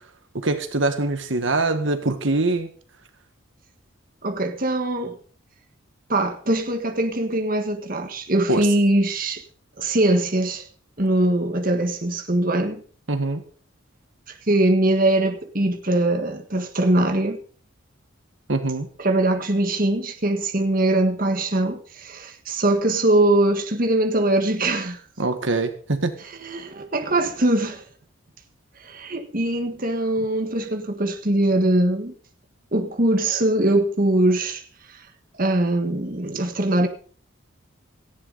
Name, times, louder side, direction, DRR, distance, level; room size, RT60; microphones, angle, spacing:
voice 1, 0.3-2.7 8.5-8.7 13.1-13.4 18.5-18.9 25.2-26.1, right 2 dB, 65° right, 1.6 m, -23 dB
voice 2, 4.2-5.2 6.1-9.4 9.8-10.7 11.0-12.8 14.3-17.4 19.0-25.0 26.4-27.8 28.8-32.1 32.7-34.6 34.9-35.0 35.4-36.9, right 1 dB, 40° right, 1.6 m, -22 dB
18.0 x 15.0 x 4.1 m
head